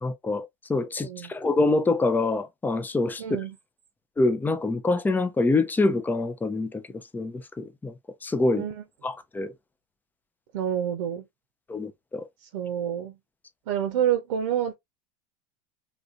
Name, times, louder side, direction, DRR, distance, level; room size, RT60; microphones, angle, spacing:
voice 1, 0.0-3.2 4.2-6.8 7.1-7.9 8.2-8.7 9.0-9.5 11.7-12.2, left 3 dB, 10° left, 0.5 m, -25 dB
voice 2, 1.0-1.3 3.2-3.5 8.6-8.8 10.5-11.2 12.5-13.1 13.7-14.7, right 9 dB, 70° right, 0.7 m, -28 dB
3.4 x 2.6 x 2.4 m
hypercardioid pair, 95°, 16 cm